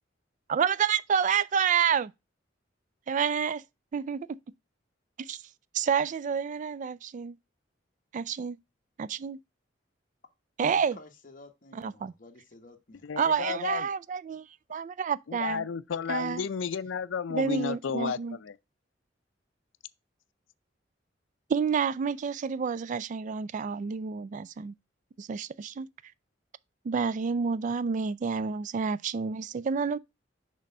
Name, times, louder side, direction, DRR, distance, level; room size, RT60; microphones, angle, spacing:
voice 1, 0.5-2.1 3.1-3.6 3.9-4.4 5.2-5.4 5.7-7.4 8.1-8.6 9.0-9.4 10.6-11.0 11.7-12.1 13.2-15.7 16.1-16.5 17.3-18.4 21.5-24.7 25.2-25.9 26.8-30.0, right 6 dB, 40° right, 0.3 m, -29 dB
voice 2, 10.6-13.1, left 1 dB, 45° left, 1.1 m, -51 dB
voice 3, 13.0-13.9 15.3-18.6, left 6 dB, 85° left, 0.4 m, -32 dB
6.5 x 3.5 x 5.4 m
head